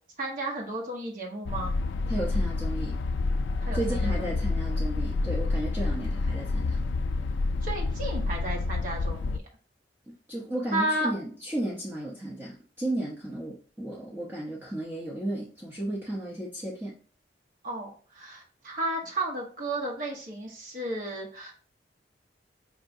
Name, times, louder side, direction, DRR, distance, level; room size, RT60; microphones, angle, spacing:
voice 1, 0.2-1.7 3.6-4.3 7.6-9.4 10.7-11.1 17.6-21.5, right 1 dB, 50° right, 0 dB, 0.9 m, -33 dB
sound 1, 1.5-9.4, left 3 dB, 85° left, 0.3 m, -28 dB
voice 2, 2.1-3.0 3.7-6.8 10.1-16.9, right 1 dB, 10° right, -6 dB, 0.8 m, -34 dB
4.6 x 2.9 x 2.6 m, 0.41 s
head